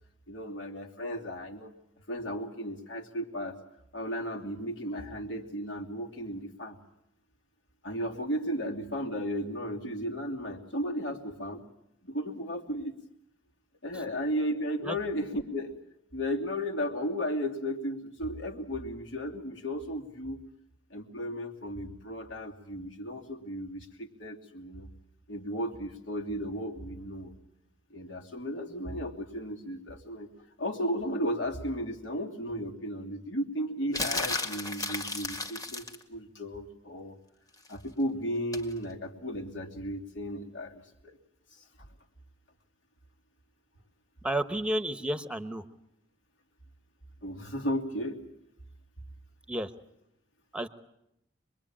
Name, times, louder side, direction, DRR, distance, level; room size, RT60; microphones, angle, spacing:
voice 1, 0.3-1.7 2.1-3.6 3.9-6.8 7.8-11.6 12.0-13.0 13.8-15.8 16.1-20.4 20.9-24.9 25.3-27.3 27.9-37.2 37.7-41.2 41.5-41.9 47.2-48.2, equal, 70° left, 2 dB, 3.0 m, -35 dB
sound 1, 33.9-36.0 38.5-38.7, left 2 dB, 20° left, 2.0 m, -33 dB
voice 2, 44.2-45.6 49.5-49.7 50.5-50.7, right 1 dB, 5° right, 11 dB, 1.1 m, -31 dB
26.0 x 22.0 x 8.8 m, 0.81 s
head